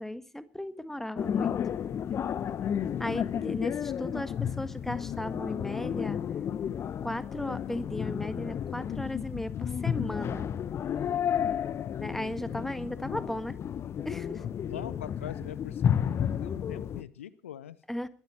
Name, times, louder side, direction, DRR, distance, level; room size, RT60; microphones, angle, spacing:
voice 1, 0.0-1.5 3.0-6.2 7.0-10.5 12.0-13.6 14.0-14.4 17.9-18.1, left 1 dB, 5° left, 13 dB, 1.6 m, -36 dB
sound 1, 1.2-17.0, left 9 dB, 40° left, 0.9 m, -32 dB
voice 2, 14.7-17.8, left 10 dB, 75° left, 19 dB, 0.7 m, -43 dB
21.5 x 12.0 x 4.4 m, 0.40 s
figure-of-eight pair, 60°, 7 cm